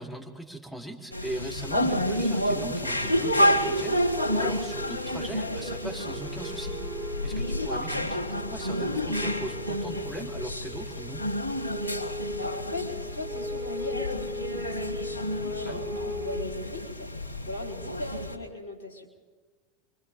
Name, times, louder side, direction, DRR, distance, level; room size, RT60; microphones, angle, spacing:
voice 1, 0.0-11.3 15.6-15.8, right 1 dB, ahead, -1 dB, 4.0 m, -39 dB
sound 1, 1.1-18.4, equal, 90° right, 2.0 m, -30 dB
sound 2, 2.1-16.4, right 1 dB, 30° right, 1.3 m, -39 dB
voice 2, 12.4-19.1, left 2 dB, 75° left, 1 dB, 4.3 m, -39 dB
28.5 x 24.0 x 3.8 m, 1.4 s
figure-of-eight pair, 80°, 0 cm